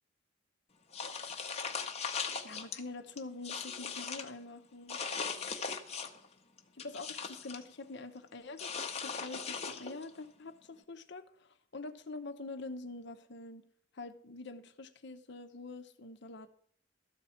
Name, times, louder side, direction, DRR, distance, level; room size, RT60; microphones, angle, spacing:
sound 1, 0.9-2.8 3.2-4.3 4.9-6.2 6.6-7.6 8.6-10.1, left 5 dB, 30° left, 1.0 m, -39 dB
voice 1, 2.4-5.0 6.8-13.6 13.9-16.5, left 3 dB, 60° left, 9 dB, 0.9 m, -45 dB
13.0 x 4.4 x 8.4 m, 0.63 s
head